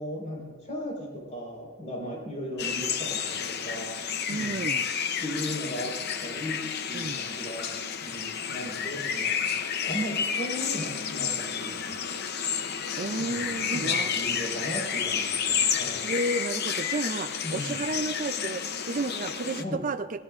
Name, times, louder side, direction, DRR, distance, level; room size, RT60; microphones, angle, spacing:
voice 1, 0.0-3.9 4.3-4.6 5.2-6.0 6.2-7.7 8.0-9.4 9.8-12.0 13.2-16.1 17.4-17.8 19.6-19.8, equal, 35° left, -1 dB, 4.4 m, -36 dB
sound 1, 2.6-19.6, left 7 dB, 50° left, 0.7 m, -31 dB
voice 2, 4.3-4.8 6.9-7.3 13.0-14.2 15.7-20.2, right 2 dB, 35° right, 8 dB, 0.4 m, -32 dB
19.0 x 17.0 x 2.5 m, 1.3 s
head